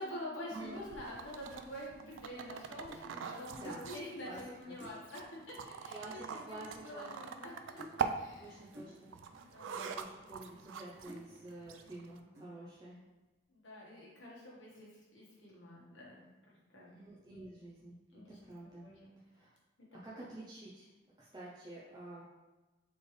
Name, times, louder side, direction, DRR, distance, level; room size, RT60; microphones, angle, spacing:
voice 1, 0.0-8.6 9.4-9.9 13.5-16.2 16.7-16.9 17.3-17.5 18.1-18.4 18.8-19.1 20.1-20.2, left 1 dB, 85° left, -5 dB, 1.4 m, -47 dB
sound 1, 0.5-12.2, right 6 dB, 90° right, 0.3 m, -44 dB
sound 2, 2.9-3.1 3.6-3.9 4.3-4.4 4.8-5.0 5.9-6.0 6.2-6.5 6.8-7.5 7.8-8.0 8.7-9.0 9.7-9.8 10.3-10.7 11.1-11.3 11.8-12.0 12.3-12.7, equal, 70° right, 1.0 m, -52 dB
voice 2, 3.3-3.9 4.2-4.8 5.9-7.2 8.4-13.0 16.9-18.9 19.3-19.5 19.9-20.9 21.2-22.2, right 2 dB, 20° right, -6 dB, 0.5 m, -50 dB
4.2 x 3.3 x 3.2 m, 1.2 s
head